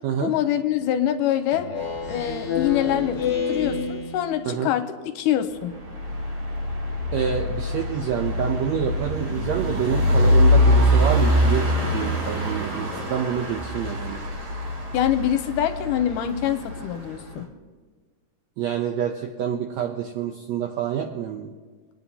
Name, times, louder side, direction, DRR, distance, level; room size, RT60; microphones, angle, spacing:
voice 1, 0.2-1.7 2.1-4.9 5.1-5.7 14.9-17.5, left 11 dB, 80° left, 8 dB, 2.1 m, -24 dB
Speech synthesizer, 1.5-4.6, left 6 dB, 40° left, 2.4 m, -29 dB
sound 1, 1.8-4.0 5.6-17.4, left 1 dB, 40° right, 1.6 m, -24 dB
voice 2, 7.1-14.2 18.6-21.5, right 8 dB, 80° right, 3 dB, 1.6 m, -27 dB
26.0 x 9.3 x 2.8 m, 1.4 s
omnidirectional pair, 3.9 m